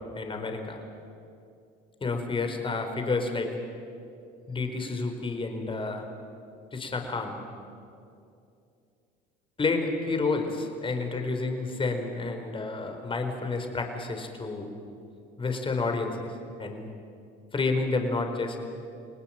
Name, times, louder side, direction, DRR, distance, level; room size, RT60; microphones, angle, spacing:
voice 1, 0.1-0.8 2.0-3.5 4.5-6.1 6.7-7.4 9.6-14.7 15.4-16.3 16.6-16.9 17.5-18.6, left 3 dB, 25° left, 5 dB, 4.7 m, -30 dB
29.0 x 19.0 x 9.1 m, 2.5 s
supercardioid pair, 85°, 19 cm